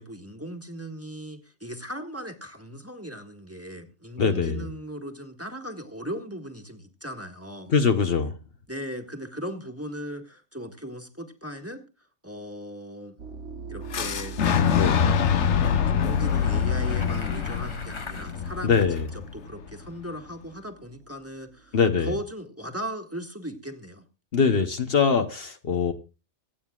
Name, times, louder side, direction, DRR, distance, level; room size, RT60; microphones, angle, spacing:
voice 1, 0.0-7.7 8.7-13.2 13.7-14.8 15.9-24.1, equal, 10° right, 4 dB, 1.6 m, -38 dB
voice 2, 4.2-4.6 7.7-8.3 14.7-15.1 18.6-19.1 21.7-22.1 24.3-25.9, left 5 dB, 60° left, 7 dB, 1.1 m, -22 dB
sound 1, 13.2-21.9, right 4 dB, 85° right, 1.3 m, -43 dB
Boom, 13.9-19.8, left 7 dB, 85° left, 1.2 m, -25 dB
Bicycle, 15.8-19.1, left 3 dB, 25° left, 1.0 m, -42 dB
25.5 x 9.1 x 2.4 m, 0.30 s
omnidirectional pair, 1.2 m